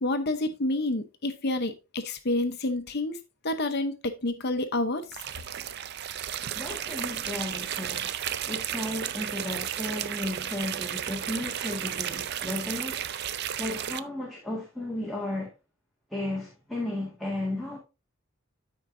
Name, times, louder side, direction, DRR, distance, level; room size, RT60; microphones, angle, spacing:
voice 1, 0.0-3.2 3.4-5.1, left 2 dB, 50° left, 0.8 m, -28 dB
sound 1, 5.1-14.0, right 10 dB, 50° right, 0.4 m, -33 dB
voice 2, 6.5-8.1 8.5-13.0 13.6-15.5 16.1-17.8, left 1 dB, ahead, 1.8 m, -34 dB
13.0 x 4.7 x 2.6 m
head